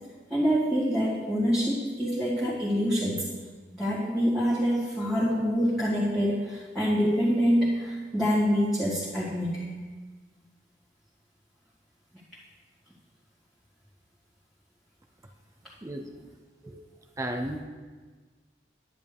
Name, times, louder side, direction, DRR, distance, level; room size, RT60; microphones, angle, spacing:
voice 1, 0.3-3.2 3.7-9.6 16.6-16.7, equal, ahead, -12 dB, 2.0 m, -26 dB
voice 2, 17.2-17.6, right 1 dB, 20° right, 4 dB, 0.5 m, -32 dB
10.5 x 9.0 x 3.4 m, 1.4 s
head